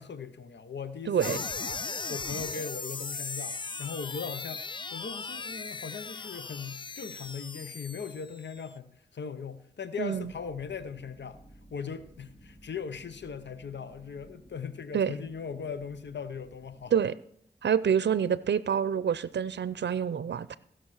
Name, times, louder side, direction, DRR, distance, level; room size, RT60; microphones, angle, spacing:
voice 1, 0.0-4.6 4.9-11.4 11.7-16.9, left 6 dB, 80° left, 0.8 m, -39 dB
voice 2, 1.1-1.4 10.0-10.3 14.9-15.1 16.9-17.1 17.6-20.6, right 8 dB, 80° right, 0.5 m, -27 dB
sound 1, 1.2-8.7, left 4 dB, 25° left, 0.3 m, -38 dB
sound 2, 10.1-16.9, equal, 45° left, 5.8 m, -56 dB
16.0 x 6.2 x 6.4 m
cardioid pair, 40°, 18 cm